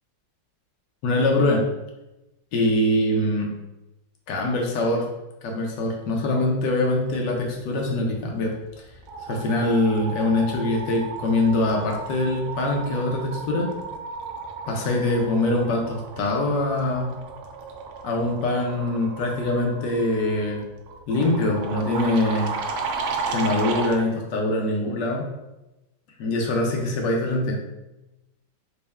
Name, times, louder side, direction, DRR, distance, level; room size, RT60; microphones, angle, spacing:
voice 1, 1.0-1.6 2.5-3.5 4.3-5.1 5.4-8.5 9.3-13.7 14.7-17.1 18.0-20.6 21.1-22.5 23.3-25.2 26.2-27.6, left 1 dB, 65° left, 0 dB, 1.2 m, -23 dB
sound 1, 8.2-8.5 8.8-24.0, right 4 dB, 85° right, 1.4 m, -34 dB
4.2 x 2.2 x 3.4 m, 0.98 s
omnidirectional pair, 2.2 m